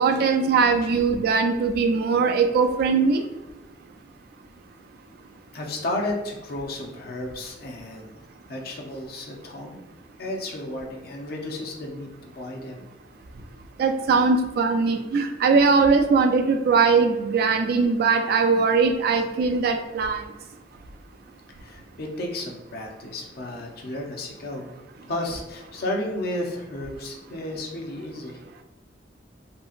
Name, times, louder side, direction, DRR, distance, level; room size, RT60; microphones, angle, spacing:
voice 1, 0.0-3.2 13.8-20.2, right 4 dB, 60° right, 6 dB, 0.3 m, -20 dB
voice 2, 5.5-8.2 8.5-9.8 10.2-12.8 21.6-24.7 25.1-28.4, left 1 dB, 60° left, 1 dB, 0.6 m, -33 dB
2.7 x 2.7 x 2.4 m, 1.1 s
head